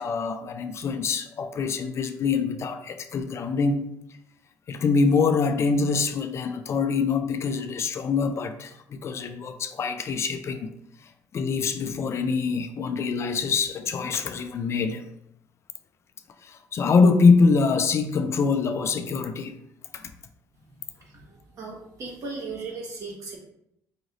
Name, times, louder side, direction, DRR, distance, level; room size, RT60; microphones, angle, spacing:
voice 1, 0.0-3.9 4.7-10.7 11.3-15.0 16.4-19.5 19.9-20.1, left 4 dB, 45° left, 0.4 m, -24 dB
voice 2, 20.7-23.4, right 3 dB, 55° right, 1.5 m, -38 dB
4.8 x 3.1 x 2.6 m
cardioid pair, 95°, 6 cm